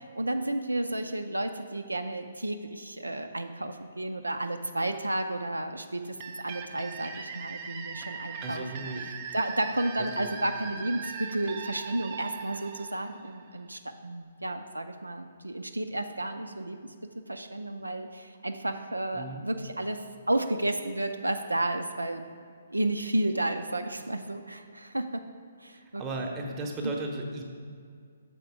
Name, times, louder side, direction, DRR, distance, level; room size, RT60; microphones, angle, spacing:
voice 1, 0.0-8.9 9.3-22.2 22.7-25.3 25.6-26.0 26.4-26.6 26.8-27.1, right 1 dB, 90° right, 6 dB, 0.4 m, -32 dB
sound 1, 6.2-13.8, right 5 dB, 35° right, 0.5 m, -40 dB
voice 2, 8.4-9.1 10.2-10.4 19.1-19.4 26.0-27.4, right 2 dB, 20° right, 0 dB, 0.8 m, -35 dB
6.6 x 4.2 x 4.8 m, 2.2 s
figure-of-eight pair, 130°, 0 cm